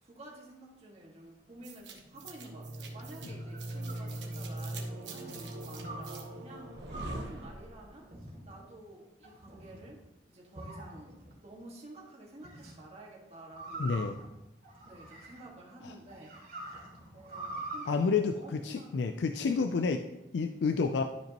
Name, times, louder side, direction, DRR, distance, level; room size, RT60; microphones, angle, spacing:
voice 1, 0.0-6.7 7.1-8.1 8.4-10.0 10.3-13.9 14.8-16.4 17.1-19.3, right 1 dB, 35° right, -2 dB, 1.8 m, -51 dB
Knowledge of the ages, 1.6-8.0, right 1 dB, 80° right, 1.1 m, -41 dB
sound 1, 3.2-4.8 5.8-6.2 6.9-7.3 8.1-8.6 9.2-9.8 10.5-11.3 12.4-12.7 13.5-15.6 16.1-17.9, right 2 dB, 55° right, 2.8 m, -44 dB
voice 2, 13.8-14.2 15.8-15.9 17.9-20.0 20.3-21.0, left 4 dB, 70° left, 7 dB, 0.4 m, -29 dB
12.0 x 5.1 x 2.9 m, 0.96 s
head